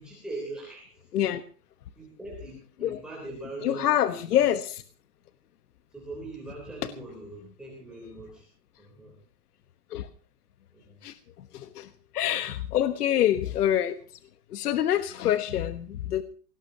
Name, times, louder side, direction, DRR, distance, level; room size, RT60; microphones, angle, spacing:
voice 1, 0.0-1.1 1.9-4.2 5.9-8.5 8.8-9.1 10.7-11.0, right 2 dB, ahead, -4 dB, 3.5 m, -41 dB
voice 2, 3.6-4.8 9.9-10.1 11.0-11.1 11.5-11.9 12.1-14.0 14.5-16.2, left 11 dB, 65° left, 11 dB, 1.3 m, -26 dB
23.5 x 18.0 x 2.9 m, 0.41 s
supercardioid pair, 175°, 49 cm